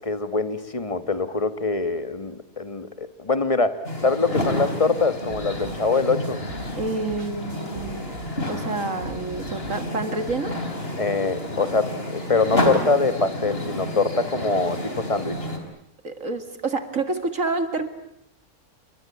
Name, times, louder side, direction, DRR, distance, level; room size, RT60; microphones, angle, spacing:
voice 1, 0.0-6.4 11.0-15.4, left 3 dB, 20° left, 10 dB, 1.6 m, -24 dB
sound 1, 3.8-15.6, left 1 dB, 40° left, 4.4 m, -30 dB
sound 2, 5.3-10.3, right 2 dB, 90° right, 4.7 m, -43 dB
voice 2, 6.7-8.1 8.5-10.6 16.0-17.9, right 3 dB, 60° right, 8 dB, 2.5 m, -28 dB
30.0 x 23.5 x 8.5 m, 0.71 s
omnidirectional pair, 1.6 m